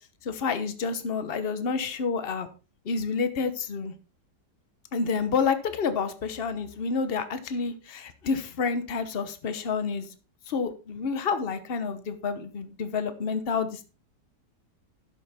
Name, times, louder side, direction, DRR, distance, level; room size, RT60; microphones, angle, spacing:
voice 1, 0.2-2.5 2.8-3.9 4.9-10.1 10.5-13.8, left 5 dB, 40° left, 1.1 m, -29 dB
11.5 x 6.8 x 4.2 m
omnidirectional pair, 1.8 m